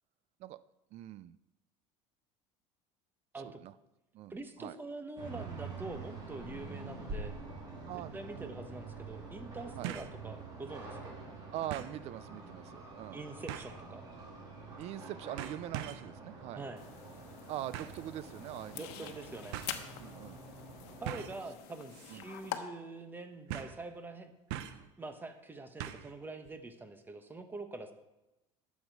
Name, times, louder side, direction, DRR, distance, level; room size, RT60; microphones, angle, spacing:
voice 1, 0.9-1.4 3.4-3.7 4.1-4.8 7.9-8.6 9.7-9.9 11.5-13.2 14.8-16.6 17.5-19.1 20.0-20.4 22.1-22.2, right 13 dB, 50° right, 17 dB, 0.5 m, -43 dB
voice 2, 4.3-7.4 7.9-11.1 13.1-14.0 16.5-16.8 18.7-19.6 21.0-24.3 25.0-27.9, right 2 dB, 15° right, 7 dB, 1.1 m, -45 dB
sound 1, 5.2-21.2, right 3 dB, 30° right, 3.4 m, -47 dB
sound 2, 7.9-8.0 9.8-10.2 10.6-10.7 11.7-12.0 13.5-13.8 14.8-15.0 15.4-16.1 17.7-18.0 19.0-19.1 19.5-19.7 21.1-21.4 21.9-22.2 22.4-22.5 23.5-23.8 24.5-24.9 25.8-26.2 26.5-26.6, right 11 dB, 85° right, 0.8 m, -41 dB
sound 3, 16.8-22.6, left 12 dB, 80° left, 1.1 m, -46 dB
12.0 x 7.3 x 4.8 m, 0.97 s
cardioid pair, 130°, 14 cm